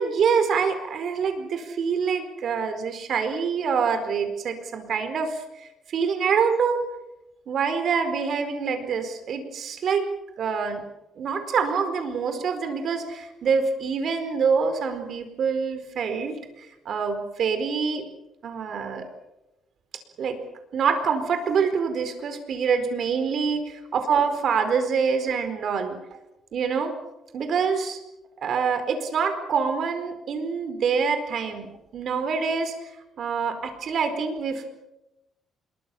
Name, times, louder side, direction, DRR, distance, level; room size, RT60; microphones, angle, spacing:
voice 1, 0.0-6.8 7.5-10.1 10.4-10.8 11.2-18.0 18.4-19.1 20.2-20.4 20.7-26.0 26.5-26.9 27.3-28.0 28.4-31.7 31.9-32.7 33.2-34.6, right 6 dB, 65° right, 8 dB, 4.6 m, -25 dB
26.5 x 22.5 x 7.1 m, 0.94 s
cardioid pair, 90°, 0 cm